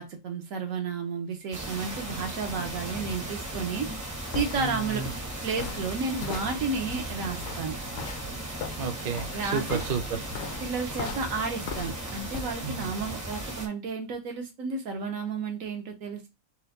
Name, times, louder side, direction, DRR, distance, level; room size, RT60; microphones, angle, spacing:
voice 1, 0.0-3.9 4.3-5.0 5.4-7.8 9.3-9.8 10.6-16.3, right 4 dB, 80° right, 4 dB, 1.2 m, -32 dB
sound 1, 1.5-13.7, right 1 dB, 20° right, 0.5 m, -37 dB
sound 2, 4.0-12.5, left 5 dB, 75° left, 0.9 m, -39 dB
voice 2, 4.6-5.1 8.8-10.3 12.6-12.7, right 5 dB, 50° right, 6 dB, 0.7 m, -31 dB
4.4 x 2.1 x 2.7 m, 0.23 s
omnidirectional pair, 1.4 m